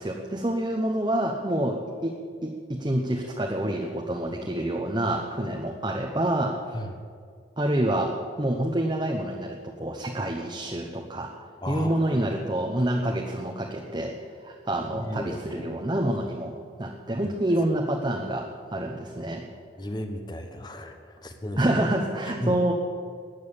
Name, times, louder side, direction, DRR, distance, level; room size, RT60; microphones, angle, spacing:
voice 1, 0.0-2.2 2.4-6.6 7.6-11.3 11.7-16.5 16.8-19.4 21.6-22.7, right 1 dB, 25° right, 1 dB, 1.0 m, -27 dB
voice 2, 11.6-12.4 14.9-15.8 17.2-17.3 19.8-21.6 22.2-22.6, left 1 dB, 25° left, 6 dB, 1.2 m, -35 dB
13.5 x 9.4 x 8.7 m, 2.1 s
head